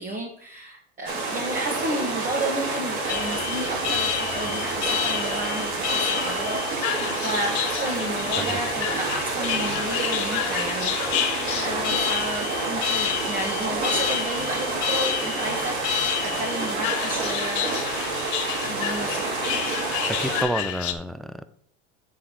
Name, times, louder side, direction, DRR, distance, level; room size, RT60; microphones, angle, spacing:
voice 1, 0.0-11.3 11.6-17.7 18.6-19.4, right 1 dB, 25° right, 0 dB, 1.5 m, -32 dB
sound 1, 1.1-20.4, right 3 dB, 75° right, 2.9 m, -28 dB
Alarm, 3.1-20.9, left 10 dB, 55° left, 1.1 m, -29 dB
voice 2, 20.1-21.5, right 1 dB, ahead, 12 dB, 0.4 m, -30 dB
8.6 x 3.8 x 6.3 m, 0.64 s
hypercardioid pair, 100°, 33 cm